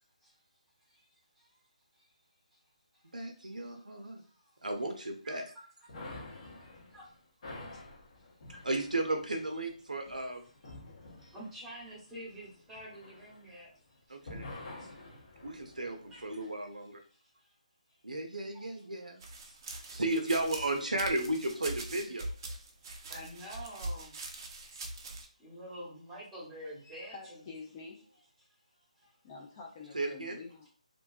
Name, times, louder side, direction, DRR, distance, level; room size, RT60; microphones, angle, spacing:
voice 1, 0.9-1.5 2.0-2.1 2.5-2.6 2.9-3.1 4.2-4.5 5.2-7.1 7.5-8.6 11.3-14.2 14.7-15.2 16.1-16.3 17.1-17.5 18.5-18.6 18.9-19.0 19.5-19.6 22.8-24.9 25.4-27.5 29.0-29.2, equal, 5° right, -6 dB, 1.0 m, -49 dB
voice 2, 3.1-4.2 4.6-5.4 8.6-10.4 11.2-11.3 14.1-14.5 15.4-17.0 18.0-19.2 19.9-22.3 29.9-30.4, right 2 dB, 85° right, 4 dB, 0.5 m, -34 dB
sound 1, 5.9-13.9 14.2-16.5, left 2 dB, 50° left, 0.9 m, -49 dB
sound 2, 19.2-25.3, right 2 dB, 30° right, 0.4 m, -42 dB
voice 3, 26.8-28.1 29.2-30.7, left 4 dB, 30° left, -1 dB, 0.4 m, -48 dB
2.5 x 2.2 x 2.3 m, 0.42 s
figure-of-eight pair, 145°, 4 cm